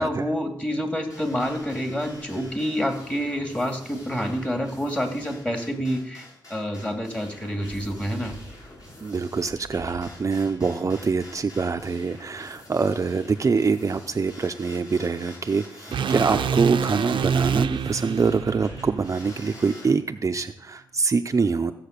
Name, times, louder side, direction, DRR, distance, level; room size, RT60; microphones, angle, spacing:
voice 1, 0.0-8.4 16.0-16.2, equal, 15° left, 3 dB, 2.6 m, -28 dB
sound 1, 1.1-19.9, left 1 dB, 45° left, 7.2 m, -46 dB
voice 2, 9.0-21.7, right 4 dB, 40° right, 6 dB, 0.6 m, -24 dB
sound 2, 15.9-20.1, right 7 dB, 80° right, 0.6 m, -27 dB
15.5 x 7.7 x 6.6 m, 0.75 s
wide cardioid pair, 105°, 8 cm